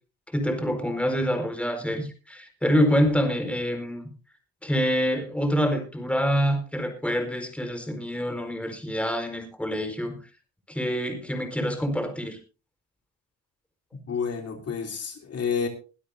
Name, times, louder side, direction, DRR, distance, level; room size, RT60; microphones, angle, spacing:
voice 1, 0.3-4.1 4.6-10.2 10.7-12.4, equal, 5° left, 6 dB, 4.6 m, -26 dB
voice 2, 14.1-15.7, left 6 dB, 55° left, 4 dB, 3.2 m, -29 dB
21.5 x 12.5 x 2.7 m, 0.34 s
cardioid pair, 90°, 30 cm